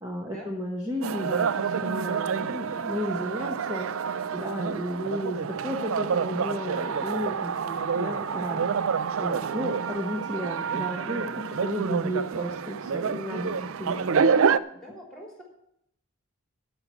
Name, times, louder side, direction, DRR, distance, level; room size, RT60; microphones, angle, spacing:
voice 1, 0.0-3.9 4.3-8.7 9.2-14.1, equal, 15° right, 0 dB, 1.0 m, -33 dB
sound 1, 1.0-14.6, right 6 dB, 70° right, 0.4 m, -28 dB
voice 2, 14.7-15.4, equal, ahead, -1 dB, 3.1 m, -45 dB
12.0 x 5.6 x 8.1 m, 0.77 s
head